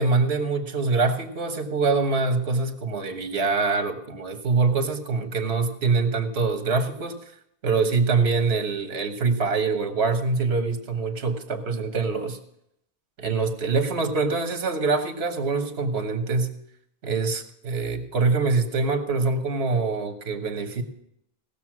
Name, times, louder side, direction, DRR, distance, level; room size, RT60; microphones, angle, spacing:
voice 1, 0.0-7.2 7.6-12.4 13.2-16.5 17.0-20.8, right 4 dB, 75° right, 7 dB, 1.5 m, -24 dB
17.5 x 6.9 x 6.1 m, 0.75 s
omnidirectional pair, 1.1 m